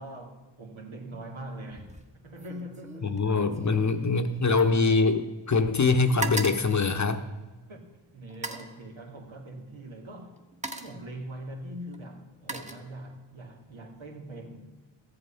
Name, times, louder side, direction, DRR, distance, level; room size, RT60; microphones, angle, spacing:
voice 1, 0.0-3.1 7.7-7.9 8.1-10.4 10.7-14.7, right 1 dB, 70° right, 2.3 m, -42 dB
sound 1, 1.7-2.1 2.4-5.5 5.8-7.7 8.3-8.8 9.8-10.0 10.4-11.1 11.9-13.3 13.7-14.1, right 2 dB, 15° right, 1.4 m, -39 dB
voice 2, 3.0-7.2, left 4 dB, 35° left, 1.0 m, -24 dB
13.5 x 7.7 x 5.8 m
supercardioid pair, 40°, 49 cm